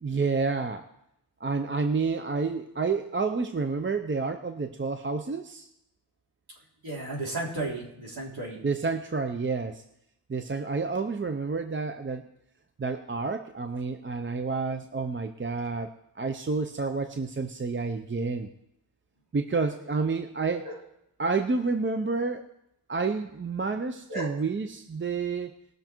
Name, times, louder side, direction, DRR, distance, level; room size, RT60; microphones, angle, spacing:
voice 1, 0.0-0.9 1.4-5.7 8.6-9.8 10.3-12.2 12.8-15.9 16.2-18.5 19.3-20.6 21.2-22.5 22.9-25.5, right 4 dB, 25° right, 7 dB, 0.6 m, -29 dB
voice 2, 6.8-8.7 20.6-20.8 24.1-24.4, right 2 dB, 50° right, -2 dB, 3.7 m, -34 dB
20.0 x 6.7 x 4.5 m, 0.79 s
wide cardioid pair, 125°, 47 cm